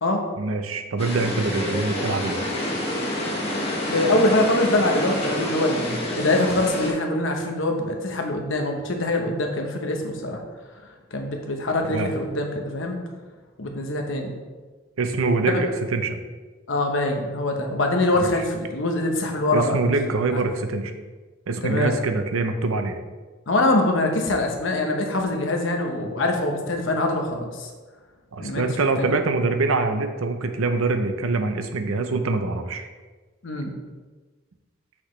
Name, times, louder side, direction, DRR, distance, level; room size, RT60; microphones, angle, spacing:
voice 1, 0.4-2.4 11.9-12.1 15.0-16.2 18.1-18.3 19.5-20.9 21.5-23.0 28.3-32.9, right 3 dB, 85° right, 7 dB, 0.6 m, -24 dB
sound 1, 1.0-6.9, left 1 dB, 30° left, 1.3 m, -28 dB
voice 2, 3.9-10.4 11.1-13.0 13.6-14.3 15.4-15.6 16.7-19.8 20.3-20.4 21.6-21.9 23.5-27.7 28.4-28.6 29.0-29.1 33.4-33.7, left 2 dB, 65° left, 3 dB, 0.9 m, -24 dB
6.0 x 6.0 x 3.2 m, 1.3 s
head